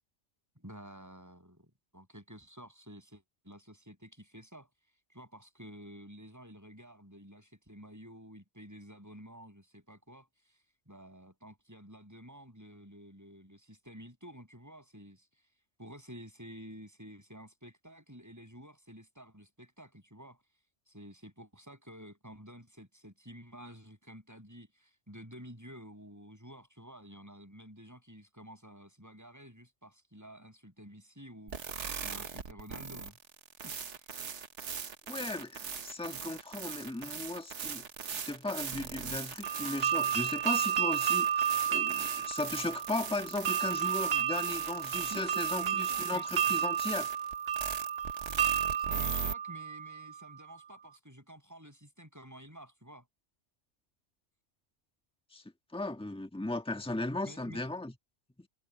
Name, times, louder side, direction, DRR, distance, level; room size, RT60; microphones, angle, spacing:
voice 1, 0.6-4.7 5.1-15.3 15.8-20.4 20.9-31.7 32.0-33.2 33.6-34.1 44.5-44.6 45.1-46.3 48.8-53.1 57.2-57.7, equal, 15° right, 7.1 m, -51 dB
sound 1, 31.5-49.3, right 6 dB, 90° right, 1.5 m, -40 dB
voice 2, 35.1-37.8 38.1-47.1 55.3-55.4 55.7-57.9 58.4-58.5, left 2 dB, 5° left, 1.5 m, -37 dB
sound 2, 39.4-50.2, right 8 dB, 60° right, 1.1 m, -32 dB
omnidirectional pair, 1.2 m